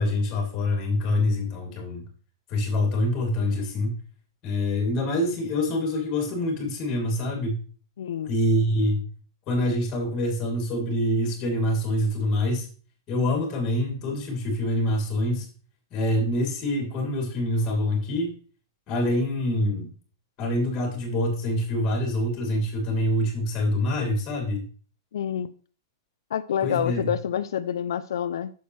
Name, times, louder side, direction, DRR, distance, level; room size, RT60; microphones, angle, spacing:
voice 1, 0.0-2.0 2.5-4.0 4.4-7.6 8.2-9.0 9.5-12.7 13.1-15.5 15.9-18.3 18.9-19.9 20.4-24.6 26.6-27.1, left 1 dB, 25° left, 2.9 m, -25 dB
voice 2, 8.0-8.3 25.1-25.5 26.3-28.5, left 9 dB, 80° left, 0.5 m, -27 dB
8.6 x 6.9 x 3.2 m
supercardioid pair, 165°, 2 cm